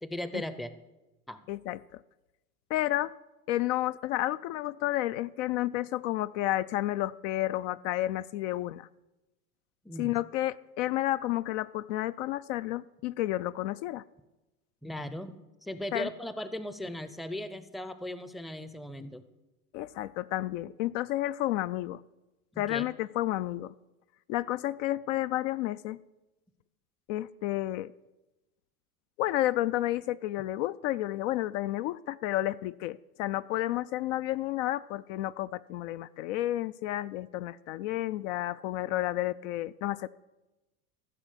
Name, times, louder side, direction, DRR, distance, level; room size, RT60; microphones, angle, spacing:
voice 1, 0.0-0.7 1.3-1.4 9.8-10.2 14.8-19.3 22.5-22.9, left 1 dB, ahead, 12 dB, 0.6 m, -38 dB
voice 2, 1.5-2.0 2.7-3.1 3.5-8.9 10.0-14.0 15.9-16.1 19.7-22.0 22.6-23.7 24.3-26.0 27.1-27.9 29.2-40.1, left 15 dB, 55° left, 15 dB, 0.5 m, -31 dB
14.5 x 6.0 x 8.1 m, 1.0 s
hypercardioid pair, 95°, 44 cm